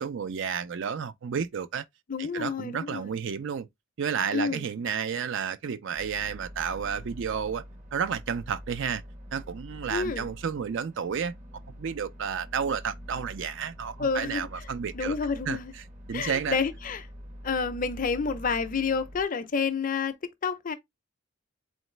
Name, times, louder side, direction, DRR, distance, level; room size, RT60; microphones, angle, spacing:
voice 1, 0.0-1.8 2.2-3.7 4.0-7.6 7.9-9.0 9.3-11.3 11.8-15.2 15.5-15.6 16.1-16.6, right 7 dB, 60° right, 0.4 m, -31 dB
voice 2, 2.1-3.1 4.3-4.7 9.9-10.3 14.0-14.7 14.9-15.7 16.1-17.1 17.4-20.7, left 5 dB, 40° left, 0.5 m, -29 dB
sound 1, 5.9-19.2, equal, 35° right, 0.8 m, -45 dB
3.9 x 3.1 x 3.1 m
head